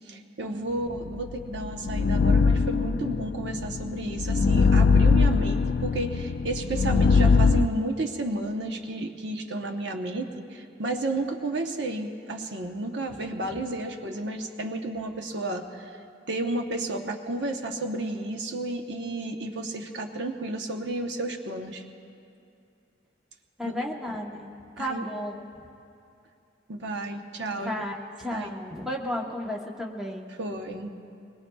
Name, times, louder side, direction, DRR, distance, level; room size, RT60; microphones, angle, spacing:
voice 1, 0.1-15.9 16.3-21.8 23.6-23.7 24.8-25.0 26.7-27.7 28.3-28.5 30.4-30.9, right 2 dB, 70° right, 4 dB, 1.0 m, -32 dB
sound 1, 1.2-7.7, left 4 dB, 60° left, 0.4 m, -22 dB
voice 2, 23.6-24.5 24.8-25.3 27.5-30.3, left 1 dB, ahead, -2 dB, 1.0 m, -33 dB
24.5 x 21.0 x 2.3 m, 2.6 s
head